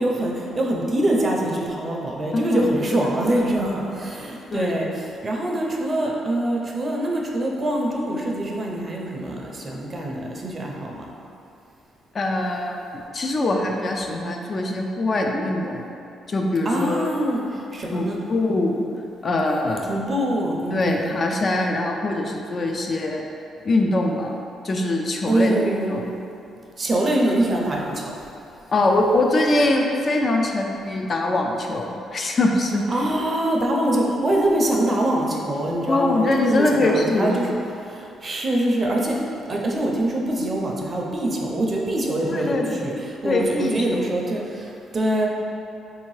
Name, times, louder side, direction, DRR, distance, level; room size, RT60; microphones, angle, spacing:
voice 1, 0.0-4.9 5.2-11.1 16.7-17.4 17.7-18.2 19.9-21.1 25.3-25.9 26.8-28.1 32.9-37.5 37.9-39.1 39.5-42.9 43.2-45.3, right 1 dB, 35° right, -1 dB, 0.5 m, -24 dB
voice 2, 2.3-3.4 4.5-5.0 12.1-15.8 16.3-17.1 17.9-18.8 19.2-20.0 20.7-23.2 23.6-26.2 28.7-33.0 35.9-37.6 42.3-42.8 43.2-44.1, left 2 dB, 40° left, 1 dB, 0.3 m, -23 dB
3.4 x 2.7 x 3.1 m, 2.7 s
cardioid pair, 90°, 0 cm